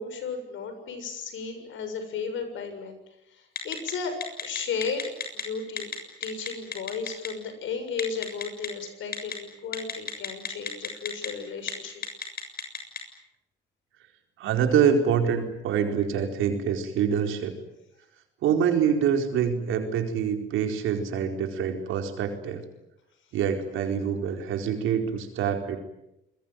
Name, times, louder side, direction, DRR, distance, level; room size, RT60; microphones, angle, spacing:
voice 1, 0.0-3.0 3.3-6.0 6.2-12.0, left 5 dB, 75° left, 8 dB, 7.1 m, -34 dB
Telephone, 3.6-3.9 4.2-5.4 5.8-5.9 6.2-7.3 8.0-8.7 9.1-9.3 9.7-11.3 11.6-11.7 12.0-13.0, left 7 dB, 50° left, 7.2 m, -31 dB
voice 2, 14.4-17.6 18.4-22.6 23.3-25.8, right 7 dB, 90° right, 4 dB, 4.6 m, -25 dB
27.5 x 22.0 x 9.2 m, 0.87 s
cardioid pair, 90°, 20 cm